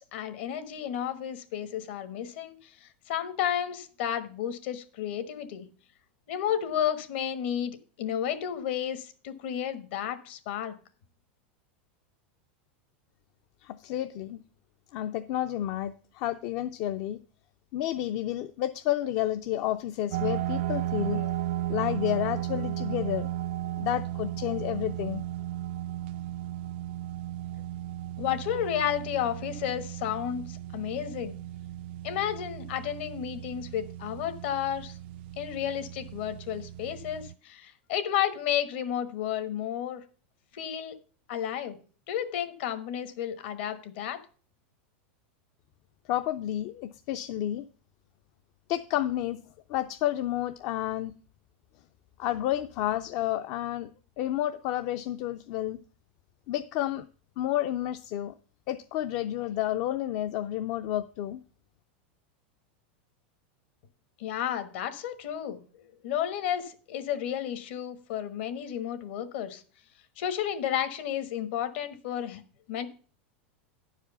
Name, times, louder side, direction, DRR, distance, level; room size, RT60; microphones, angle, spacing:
voice 1, 0.0-5.7 6.3-10.7 28.2-31.4 32.0-35.0 35.4-40.0 40.5-40.9 41.3-41.8 42.1-44.2 64.2-65.6 66.0-69.6 70.2-72.4 72.7-72.9, left 10 dB, 70° left, 10 dB, 1.4 m, -32 dB
voice 2, 13.6-14.4 14.9-17.2 17.7-21.3 21.7-23.3 23.8-25.2 46.1-47.6 48.7-49.4 49.7-51.1 52.2-53.9 54.2-55.8 56.5-57.0 57.4-58.3 58.7-61.4, left 13 dB, 50° left, 9 dB, 0.5 m, -30 dB
sound 1, 20.1-37.3, right 13 dB, 65° right, 0.3 m, -35 dB
9.8 x 4.9 x 6.8 m, 0.39 s
supercardioid pair, 135°, 6 cm